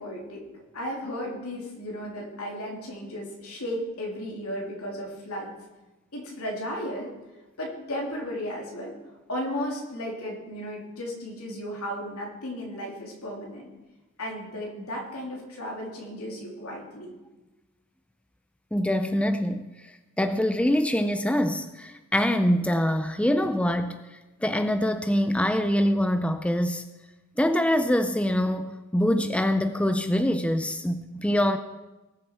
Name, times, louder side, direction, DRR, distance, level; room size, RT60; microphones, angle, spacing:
voice 1, 0.0-5.5 6.1-7.1 7.6-8.9 9.3-13.7 14.2-17.1, equal, 90° left, -1 dB, 3.0 m, -34 dB
voice 2, 18.7-19.6 20.2-24.0 24.4-26.9 27.4-31.6, equal, 5° left, 9 dB, 0.4 m, -24 dB
19.5 x 7.0 x 4.6 m, 1.1 s
head